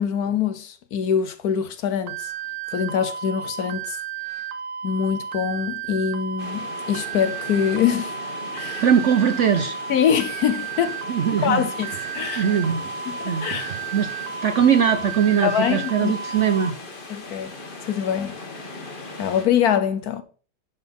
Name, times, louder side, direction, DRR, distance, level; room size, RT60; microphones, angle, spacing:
voice 1, 0.0-2.3 2.7-4.0 4.8-8.1 8.5-8.8 9.9-11.0 11.4-12.5 13.1-13.8 15.4-16.4 17.1-17.5 17.9-18.3 19.2-20.2, left 8 dB, 65° left, 1.2 m, -24 dB
sound 1, 2.1-16.7, right 7 dB, 90° right, 1.4 m, -33 dB
sound 2, 6.4-19.5, left 3 dB, 30° left, 1.4 m, -39 dB
voice 2, 8.8-9.7 11.1-11.7 12.3-12.9 13.2-14.1 14.4-16.8, right 8 dB, 60° right, 0.8 m, -21 dB
11.0 x 4.1 x 5.3 m
omnidirectional pair, 1.9 m